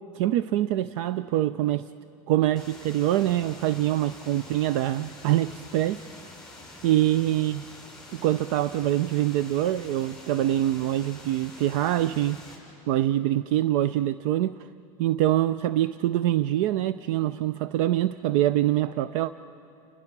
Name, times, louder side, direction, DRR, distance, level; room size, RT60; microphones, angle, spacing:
voice 1, 0.1-1.9 2.3-6.0 6.8-7.6 8.1-12.4 12.9-14.6 15.0-19.3, right 13 dB, 60° right, 15 dB, 0.5 m, -24 dB
sound 1, 2.6-12.6, left 2 dB, ahead, 6.1 m, -46 dB
29.0 x 22.5 x 6.0 m, 2.6 s
supercardioid pair, 145°, 19 cm